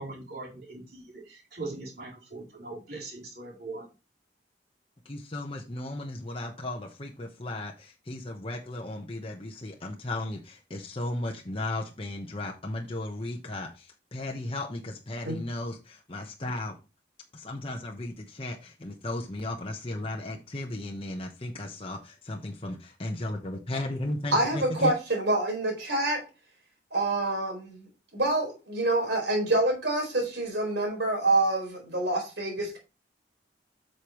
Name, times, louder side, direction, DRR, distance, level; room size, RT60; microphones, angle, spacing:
voice 1, 0.0-3.9, right 3 dB, 55° right, 4.1 m, -40 dB
voice 2, 5.0-16.7 17.3-24.9, left 1 dB, 30° left, 1.0 m, -35 dB
voice 3, 24.3-26.2 26.9-32.8, right 2 dB, 70° right, 4.4 m, -27 dB
8.3 x 6.6 x 3.0 m
head